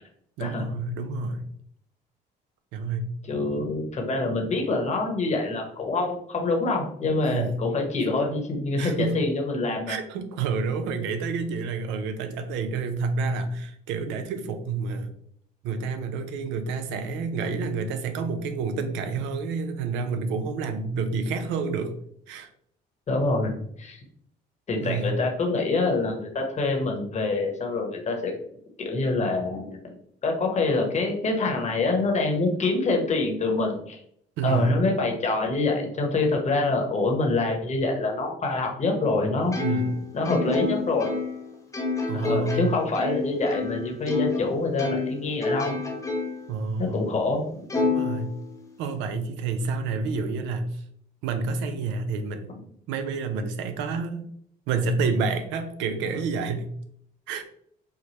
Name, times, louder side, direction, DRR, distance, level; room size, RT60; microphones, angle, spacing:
voice 1, 0.4-1.5 2.7-3.1 7.2-7.6 8.8-9.2 9.9-15.1 15.6-21.9 22.3-22.5 24.8-25.2 34.4-34.7 39.6-39.9 42.1-42.7 46.5-47.0 47.8-48.3 48.8-50.8 51.2-52.5 52.9-54.3 54.7-56.7 57.3-57.4, right 4 dB, 90° right, 8 dB, 0.5 m, -29 dB
voice 2, 3.3-10.0 23.1-24.0 24.7-28.3 28.8-29.9 30.2-34.0 34.4-39.6 40.1-41.1 42.1-45.8 46.8-47.7, left 3 dB, 40° left, 2 dB, 1.0 m, -26 dB
Plucked string instrument, 39.5-44.5 44.8-46.5 46.9-47.0 47.7-48.9, left 3 dB, 15° left, 0.9 m, -29 dB
4.6 x 2.2 x 3.0 m, 0.67 s
cardioid pair, 80°, 18 cm